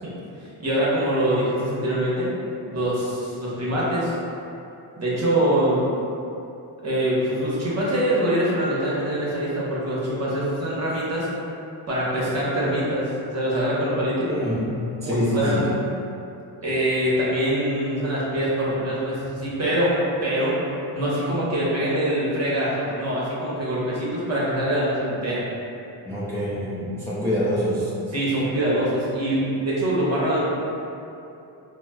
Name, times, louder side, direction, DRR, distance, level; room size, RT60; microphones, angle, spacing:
voice 1, 0.6-2.3 2.7-4.2 5.0-5.8 6.8-11.3 11.9-14.3 15.0-15.6 16.6-20.5 20.9-25.5 28.1-30.4, right 1 dB, 30° right, -7 dB, 1.0 m, -24 dB
voice 2, 14.2-15.7 26.1-27.9, left 1 dB, 5° left, -11 dB, 0.5 m, -25 dB
4.0 x 2.1 x 2.3 m, 2.8 s
cardioid pair, 85°, 48 cm